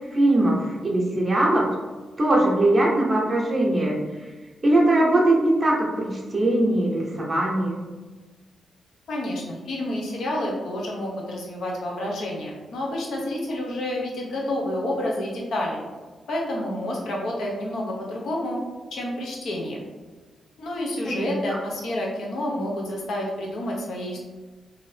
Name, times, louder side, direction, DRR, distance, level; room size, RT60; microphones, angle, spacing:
voice 1, 0.1-1.7 2.2-4.0 4.6-7.8 21.0-21.3, right 1 dB, 25° right, -3 dB, 0.6 m, -21 dB
voice 2, 9.1-15.8 16.3-18.6 18.9-19.8 20.6-24.2, left 1 dB, 75° left, -2 dB, 0.7 m, -29 dB
2.7 x 2.6 x 3.2 m, 1.3 s
wide cardioid pair, 120°, 0 cm